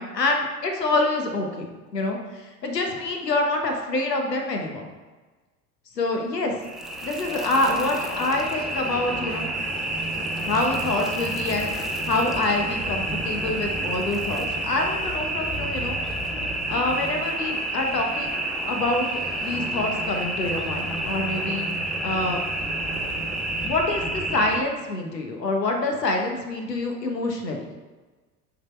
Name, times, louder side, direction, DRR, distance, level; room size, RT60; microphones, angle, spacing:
voice 1, 0.0-1.7 1.9-4.9 6.0-6.5 7.0-9.5 10.5-11.7 12.0-16.0 16.7-18.4 18.7-19.1 19.4-21.7 22.0-22.4 23.6-27.7, left 2 dB, 80° left, 3 dB, 1.2 m, -26 dB
sound 1, 6.6-24.6, right 2 dB, ahead, 0.4 m, -29 dB
sound 2, 7.2-23.7, left 5 dB, 40° left, 0.7 m, -43 dB
Fire, 9.5-15.2, left 1 dB, 15° left, 1.6 m, -44 dB
6.5 x 4.2 x 4.3 m, 1.3 s
figure-of-eight pair, 75°, 49 cm